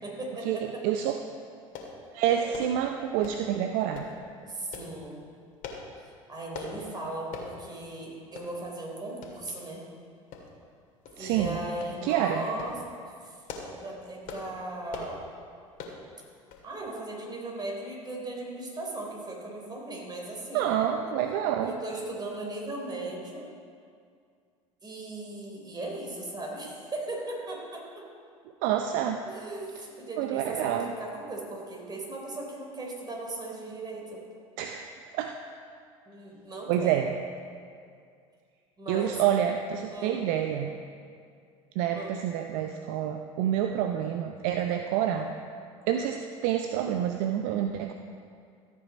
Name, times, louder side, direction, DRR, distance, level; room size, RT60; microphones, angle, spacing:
voice 1, 0.0-0.8 2.3-2.6 4.4-5.3 6.3-9.8 11.2-15.2 16.6-20.7 21.0-21.1 21.6-23.5 24.8-28.0 29.3-34.2 36.1-37.1 38.8-39.2 39.9-40.2 42.0-42.1, right 2 dB, 25° right, -1 dB, 3.7 m, -38 dB
voice 2, 0.8-1.2 2.1-4.1 11.2-11.6 12.0-12.5 20.5-21.7 28.6-29.2 30.2-30.9 34.6-34.9 35.1-35.4 36.7-37.1 38.9-40.7 41.8-45.3 45.9-47.9, right 10 dB, 60° right, 6 dB, 0.6 m, -28 dB
sound 1, 1.7-1.9 2.5-2.7 3.2-3.5 3.9-4.1 4.7-4.9 5.6-5.9 6.5-6.7 7.3-7.5 7.9-8.0 8.4-8.5 9.2-9.4 10.3-10.7 11.0-11.2 11.8-12.0 12.4-12.8 13.3-13.8 14.2-14.5 14.9-15.2 15.8-16.0 16.5-16.7 17.0-17.1, left 5 dB, 50° left, 2.2 m, -41 dB
14.0 x 8.3 x 5.1 m, 2.3 s
figure-of-eight pair, 70°, 17 cm